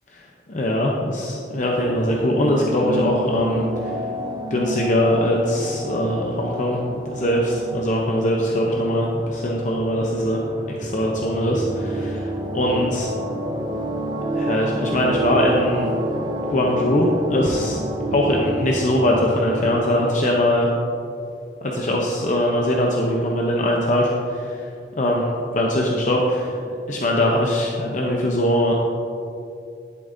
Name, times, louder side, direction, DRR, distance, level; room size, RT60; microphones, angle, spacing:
voice 1, 0.5-3.9 4.5-6.8 7.1-10.4 10.7-13.1 14.3-15.9 16.5-17.8 18.1-20.7 21.6-24.6 25.0-26.5 26.9-28.7, left 1 dB, 45° left, -1 dB, 0.7 m, -21 dB
sound 1, 1.8-20.1, right 1 dB, 25° right, 0.5 m, -29 dB
11.0 x 8.4 x 2.7 m, 2.5 s
head